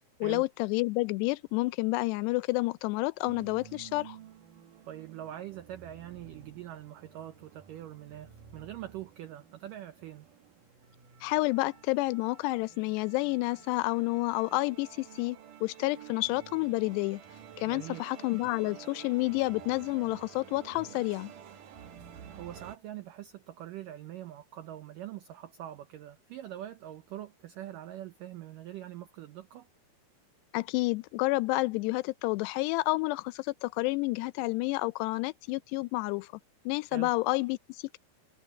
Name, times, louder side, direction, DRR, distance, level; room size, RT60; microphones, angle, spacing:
voice 1, 0.2-4.2 11.2-17.2 17.6-21.3 30.5-36.3 36.7-38.0, left 22 dB, 85° left, 2.6 m, -30 dB
sound 1, 3.3-22.8, right 8 dB, 60° right, 2.8 m, -51 dB
voice 2, 4.9-10.3 17.7-18.0 22.4-29.7 36.9-37.1, right 12 dB, 85° right, 1.9 m, -43 dB
omnidirectional pair, 5.0 m